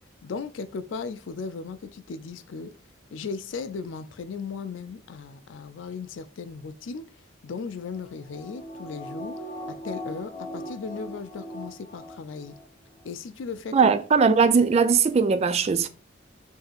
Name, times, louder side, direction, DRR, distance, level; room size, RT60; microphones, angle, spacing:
voice 1, 0.2-2.8 3.1-7.0 7.4-12.6 13.0-13.9, left 5 dB, 75° left, 0.4 m, -36 dB
sound 1, 7.9-12.6 13.0-13.1, equal, 30° left, 0.7 m, -39 dB
voice 2, 13.7-15.9, right 5 dB, 35° right, 0.3 m, -20 dB
5.3 x 2.7 x 2.4 m
head